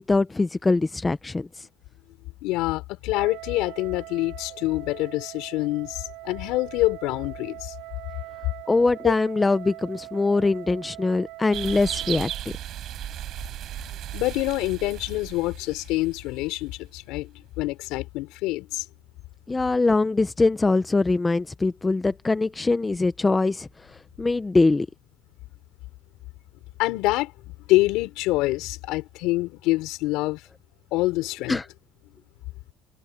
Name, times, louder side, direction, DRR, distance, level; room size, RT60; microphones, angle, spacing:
voice 1, 0.0-1.7 8.7-12.3 19.5-24.9 31.5-31.6, left 3 dB, 10° left, 0.5 m, -23 dB
voice 2, 2.4-7.7 9.0-9.1 14.1-18.8 26.8-27.3 27.7-30.4 30.9-31.6, left 19 dB, 75° left, 4.4 m, -26 dB
Wind instrument woodwind instrument, 3.1-12.4, right 19 dB, 75° right, 6.7 m, -42 dB
sound 1, 11.5-16.5, right 12 dB, 45° right, 5.2 m, -35 dB
cardioid pair, 170°, 0 cm